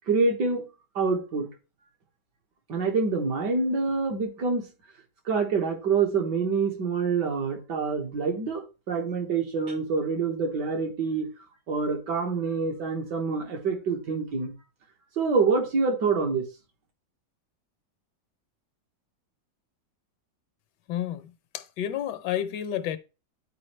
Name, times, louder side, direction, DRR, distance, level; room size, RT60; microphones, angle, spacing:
voice 1, 0.1-0.6 1.0-1.5 2.7-4.6 5.3-11.3 11.7-14.5 15.2-16.5, right 4 dB, 80° right, 2.0 m, -26 dB
voice 2, 20.9-23.0, left 10 dB, 85° left, 1.3 m, -31 dB
10.5 x 4.5 x 3.2 m
omnidirectional pair, 1.8 m